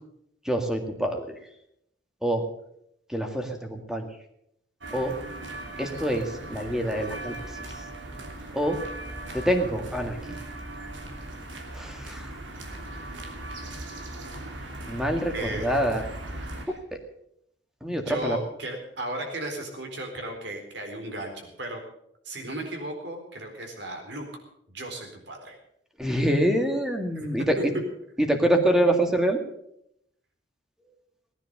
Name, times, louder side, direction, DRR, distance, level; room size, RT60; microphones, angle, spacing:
voice 1, 0.4-1.4 2.2-2.4 3.1-4.1 4.9-5.1 5.8-7.6 8.5-8.8 9.3-10.4 11.7-12.3 14.9-16.0 16.7-17.0 17.8-18.4 26.0-27.6 28.2-29.4, right 1 dB, 5° right, 4 dB, 2.0 m, -26 dB
sound 1, 4.8-16.6, right 2 dB, 90° right, 3.0 m, -38 dB
voice 2, 15.3-15.8 16.6-16.8 17.9-21.8 22.2-24.3 24.7-25.5 27.6-27.7, right 1 dB, 65° right, 3 dB, 4.0 m, -35 dB
18.5 x 10.5 x 6.7 m, 0.75 s
head